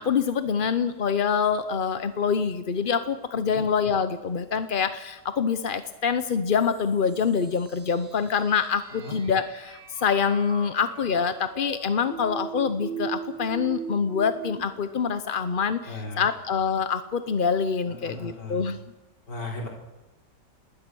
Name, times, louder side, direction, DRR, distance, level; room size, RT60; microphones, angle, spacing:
voice 1, 0.0-18.8, left 6 dB, 45° left, 11 dB, 0.7 m, -25 dB
sound 1, 6.5-14.6, right 6 dB, 85° right, 3.8 m, -39 dB
voice 2, 15.9-16.3 17.9-18.7 19.3-19.7, left 2 dB, 70° left, -1 dB, 4.6 m, -36 dB
27.0 x 20.0 x 6.2 m, 1.1 s
omnidirectional pair, 1.9 m